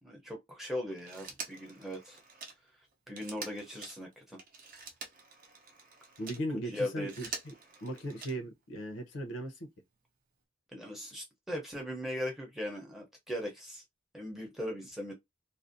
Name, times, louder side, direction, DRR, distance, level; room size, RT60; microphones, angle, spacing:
voice 1, 0.0-2.2 3.1-4.4 6.7-7.1 10.7-13.8 14.1-15.1, left 1 dB, ahead, 0.6 m, -39 dB
Telephone, 1.0-6.5 6.9-8.6 9.9-10.0, right 4 dB, 45° right, 0.6 m, -46 dB
voice 2, 6.2-7.5 7.8-9.6, right 1 dB, 75° left, 0.6 m, -38 dB
2.5 x 2.0 x 2.5 m
head